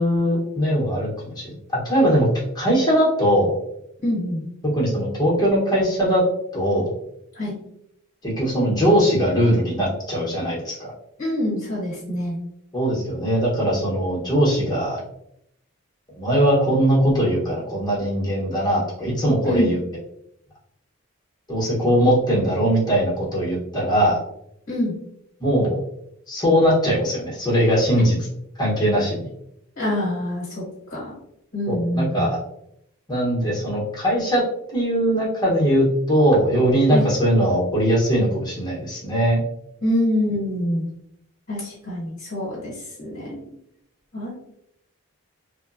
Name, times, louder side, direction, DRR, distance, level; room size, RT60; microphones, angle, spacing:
voice 1, 0.0-1.5 1.8-2.3 2.5-3.6 4.7-6.2 6.5-6.9 8.2-10.9 12.7-15.0 16.1-19.8 21.5-24.2 25.4-25.8 26.3-28.1 28.6-29.3 31.7-32.4 33.1-34.4 34.7-39.4, equal, 20° left, -5 dB, 0.8 m, -20 dB
voice 2, 4.0-4.4 7.3-7.5 11.2-12.4 19.4-19.8 24.7-24.9 29.8-30.6 30.9-31.1 31.5-32.3 36.9-37.1 39.8-40.9 41.5-43.4 44.1-44.3, left 1 dB, 45° left, -6 dB, 0.9 m, -25 dB
2.9 x 2.1 x 2.4 m, 0.76 s
head